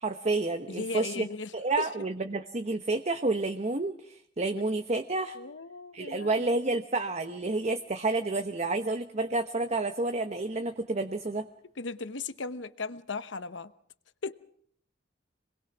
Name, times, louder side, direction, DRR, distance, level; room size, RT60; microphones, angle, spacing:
voice 1, 0.0-1.3 1.5-5.4 5.9-11.5, right 2 dB, 35° right, 1.0 m, -30 dB
voice 2, 0.7-1.9 5.3-6.4 11.8-13.7 14.2-14.4, left 4 dB, 75° left, 1.0 m, -37 dB
26.5 x 20.5 x 6.1 m
head